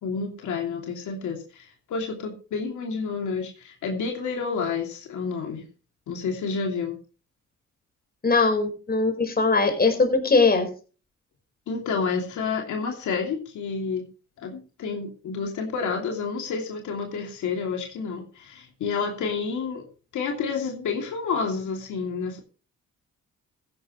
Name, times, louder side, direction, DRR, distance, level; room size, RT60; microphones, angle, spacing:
voice 1, 0.0-5.6 6.1-7.0 11.7-14.1 14.4-19.8 20.1-22.4, left 5 dB, 75° left, 1 dB, 2.9 m, -29 dB
voice 2, 8.2-10.7, left 3 dB, 30° left, 5 dB, 4.8 m, -21 dB
15.5 x 10.5 x 3.2 m, 0.36 s
cardioid pair, 90°, 30 cm